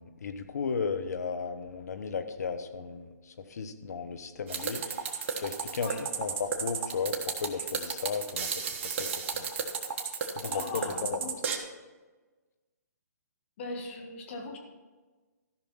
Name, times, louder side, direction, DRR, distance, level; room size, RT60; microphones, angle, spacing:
voice 1, 0.0-4.8 5.4-5.9 6.2-8.5 8.8-9.5 10.3-10.6 11.0-11.2, left 5 dB, 65° left, 9 dB, 1.1 m, -35 dB
sound 1, 4.5-11.6, right 6 dB, 40° right, 1.3 m, -33 dB
voice 2, 10.4-11.3 13.6-14.6, left 3 dB, 45° left, 2 dB, 1.9 m, -39 dB
13.5 x 5.9 x 5.7 m, 1.3 s
hypercardioid pair, 140°, 9 cm